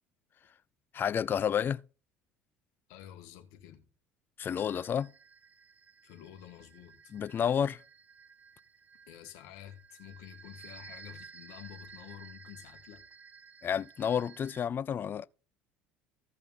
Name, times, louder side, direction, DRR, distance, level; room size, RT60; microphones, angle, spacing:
voice 1, 0.9-1.8 4.4-5.1 7.1-7.8 13.6-15.3, left 8 dB, 40° left, 0.5 m, -30 dB
voice 2, 2.9-3.8 6.0-7.1 9.1-13.0, left 11 dB, 65° left, 1.8 m, -50 dB
sound 1, 4.4-14.7, right 6 dB, 25° right, 0.6 m, -54 dB
16.0 x 5.7 x 4.0 m
hypercardioid pair, 65°, 6 cm